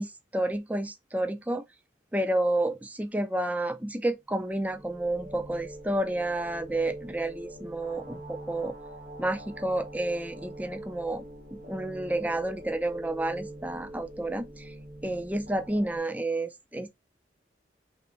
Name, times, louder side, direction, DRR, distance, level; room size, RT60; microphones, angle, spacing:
voice 1, 0.0-1.6 2.1-8.7 9.2-11.2 11.5-14.7 15.0-16.9, right 1 dB, 10° right, 0.4 m, -30 dB
sound 1, 4.4-16.0, right 1 dB, 55° right, 1.4 m, -44 dB
3.4 x 2.9 x 3.8 m
head